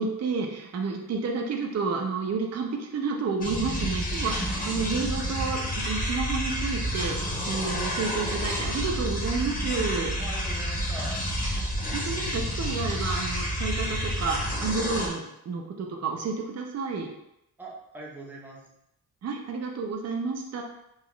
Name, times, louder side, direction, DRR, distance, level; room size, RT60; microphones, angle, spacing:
voice 1, 0.0-10.2 11.9-17.1 19.2-20.6, right 4 dB, 45° right, 2 dB, 0.5 m, -30 dB
sound 1, 3.4-15.1, equal, 25° left, 0.9 m, -29 dB
voice 2, 3.7-4.0 10.2-11.2 17.6-18.6, right 1 dB, 5° right, -4 dB, 0.7 m, -42 dB
3.9 x 2.3 x 3.0 m, 0.82 s
wide cardioid pair, 130°, 37 cm